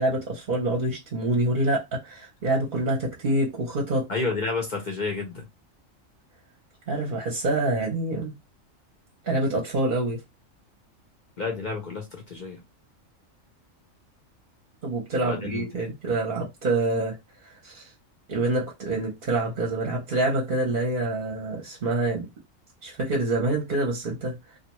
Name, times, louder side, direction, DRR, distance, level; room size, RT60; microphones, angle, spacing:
voice 1, 0.0-4.1 6.9-8.3 9.2-10.2 14.8-17.2 17.4-17.9 18.3-22.3 22.8-24.6, right 2 dB, 50° right, 0.8 m, -26 dB
voice 2, 4.1-5.5 11.4-12.6 15.2-15.7, left 3 dB, 50° left, 0.6 m, -30 dB
2.5 x 2.2 x 2.9 m
omnidirectional pair, 1.4 m